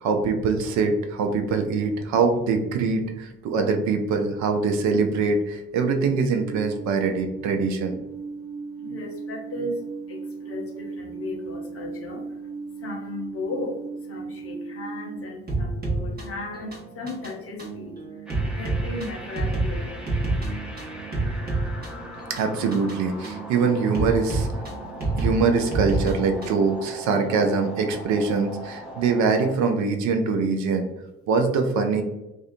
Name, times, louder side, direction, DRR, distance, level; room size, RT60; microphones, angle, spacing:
voice 1, 0.0-8.0 22.3-24.5 25.2-30.9 31.3-32.0, right 4 dB, 55° right, 5 dB, 0.4 m, -23 dB
Alarm, 6.2-15.2, right 4 dB, 85° right, 1.0 m, -36 dB
voice 2, 8.8-12.4 12.8-13.8 14.1-17.9 18.6-20.4, left 2 dB, 40° left, 1 dB, 0.7 m, -35 dB
sound 1, 15.5-26.7, right 2 dB, 30° right, 0.9 m, -29 dB
sound 2, 18.3-29.5, equal, 5° right, 0.5 m, -40 dB
2.3 x 2.2 x 2.5 m, 0.97 s
figure-of-eight pair, 40°, 34 cm